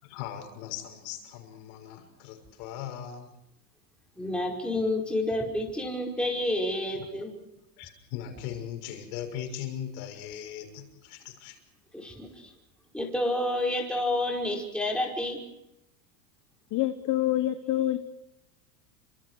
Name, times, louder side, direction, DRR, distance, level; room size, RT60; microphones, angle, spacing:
voice 1, 0.0-3.4 7.0-7.1 7.8-11.6, left 10 dB, 60° left, 5 dB, 6.4 m, -39 dB
voice 2, 4.2-7.3 11.9-12.5 12.9-15.4, left 1 dB, ahead, -1 dB, 5.4 m, -29 dB
voice 3, 16.7-18.0, left 13 dB, 35° left, 10 dB, 1.2 m, -26 dB
30.0 x 25.5 x 4.9 m, 0.85 s
supercardioid pair, 125°, 49 cm